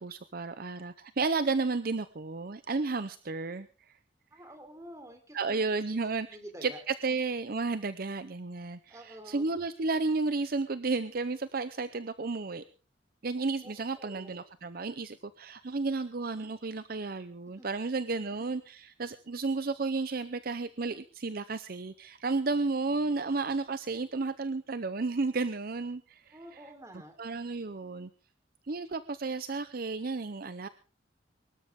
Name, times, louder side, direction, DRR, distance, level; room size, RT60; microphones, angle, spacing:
voice 1, 0.0-3.7 5.3-6.3 6.6-12.6 13.2-26.3 27.2-28.1 28.7-30.7, right 3 dB, 50° right, 13 dB, 0.7 m, -32 dB
voice 2, 4.3-6.8 7.1-7.2 8.9-9.6 13.6-14.4 17.4-17.7 18.3-18.6 26.3-27.1, equal, 15° right, 5 dB, 3.6 m, -49 dB
23.5 x 13.0 x 3.6 m, 0.36 s
head